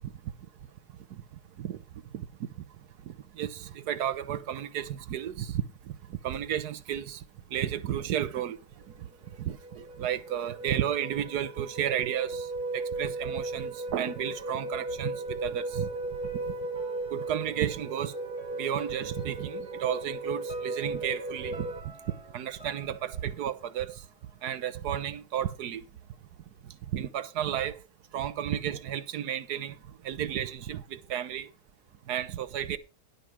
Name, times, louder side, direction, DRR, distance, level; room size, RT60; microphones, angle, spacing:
voice 1, 3.1-5.6 6.1-7.2 7.5-8.6 9.0-9.1 9.4-12.5 12.7-15.9 16.5-16.6 17.1-18.1 18.6-21.7 22.3-24.0 24.4-25.8 26.9-27.8 28.1-29.8 30.0-31.5 32.1-32.8, right 10 dB, 80° right, 1.4 m, -32 dB
sound 1, 8.9-9.0 9.3-21.8, right 2 dB, 65° right, 2.5 m, -36 dB
sound 2, 15.4-24.4 24.7-24.8, right 2 dB, 15° left, 5.0 m, -48 dB
11.5 x 5.3 x 6.0 m
omnidirectional pair, 1.7 m